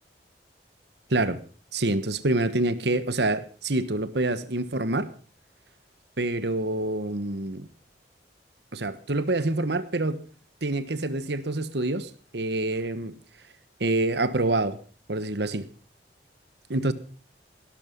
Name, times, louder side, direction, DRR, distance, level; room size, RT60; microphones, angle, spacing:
voice 1, 1.1-1.4 1.7-5.1 6.2-7.6 8.7-10.2 10.6-13.1 13.8-14.8 15.1-15.7 16.7-16.9, right 2 dB, 70° right, 1.3 m, -26 dB
17.5 x 12.5 x 5.3 m
head